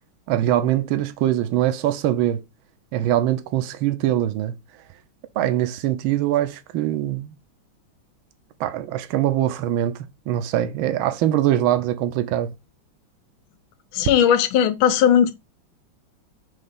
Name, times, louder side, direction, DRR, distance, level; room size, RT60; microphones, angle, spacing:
voice 1, 0.3-2.4 2.9-4.6 5.4-7.3 8.6-12.5, right 12 dB, 80° right, 1.5 m, -22 dB
voice 2, 13.9-15.4, left 9 dB, 85° left, 1.5 m, -17 dB
5.4 x 3.3 x 5.4 m
omnidirectional pair, 2.2 m